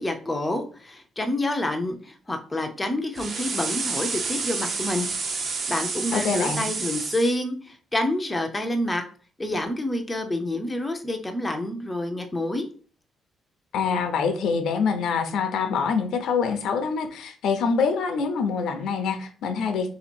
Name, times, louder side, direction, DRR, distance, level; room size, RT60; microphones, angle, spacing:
voice 1, 0.0-5.1 5.3-9.0 9.4-12.7, left 1 dB, 10° left, 4 dB, 0.5 m, -28 dB
sound 1, 3.2-7.3, right 4 dB, 40° right, 0.7 m, -29 dB
voice 2, 6.1-6.7 13.7-19.9, left 5 dB, 75° left, 7 dB, 0.6 m, -25 dB
3.4 x 2.9 x 4.3 m, 0.41 s
cardioid pair, 160°, 0 cm